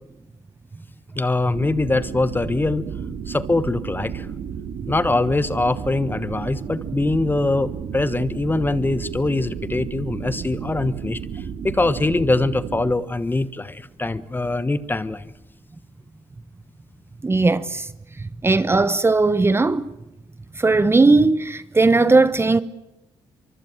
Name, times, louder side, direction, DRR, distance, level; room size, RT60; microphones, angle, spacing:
voice 1, 1.2-2.8 3.3-4.3 4.9-11.2 11.6-15.3, left 2 dB, 20° left, 1.3 m, -23 dB
sound 1, 1.5-12.9, right 7 dB, 75° right, 2.2 m, -32 dB
voice 2, 17.2-17.9 18.4-19.8 20.6-22.6, right 3 dB, 20° right, 1.1 m, -17 dB
24.5 x 24.0 x 7.4 m
cardioid pair, 80°, 11 cm